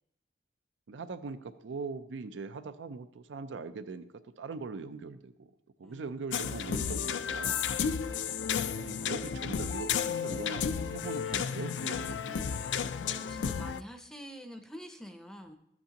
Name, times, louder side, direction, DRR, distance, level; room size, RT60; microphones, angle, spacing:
voice 1, 0.9-5.5 5.8-7.7 8.8-12.5, right 4 dB, 90° right, 12 dB, 0.5 m, -41 dB
voice 2, 5.8-6.3 13.0-15.6, equal, 5° left, 5 dB, 0.5 m, -47 dB
sound 1, 6.3-13.8, left 7 dB, 80° left, 0.4 m, -32 dB
14.0 x 8.2 x 2.9 m, 0.80 s
head